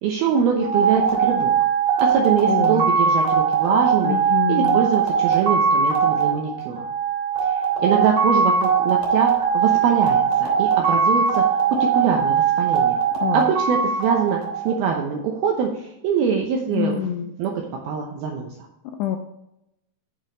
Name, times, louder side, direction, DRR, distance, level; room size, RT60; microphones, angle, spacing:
voice 1, 0.0-1.5 2.0-4.2 4.5-6.9 7.5-11.4 11.9-13.0 13.3-14.4 14.7-17.0 17.4-18.5, right 7 dB, 80° right, 1 dB, 2.2 m, -23 dB
sound 1, 0.6-15.0, right 6 dB, 50° right, 3.7 m, -20 dB
voice 2, 2.5-2.9 4.0-4.9 13.2-13.5 16.7-17.3 19.0-19.2, left 9 dB, 85° left, 5 dB, 2.4 m, -26 dB
9.4 x 6.6 x 4.0 m, 0.85 s
omnidirectional pair, 5.6 m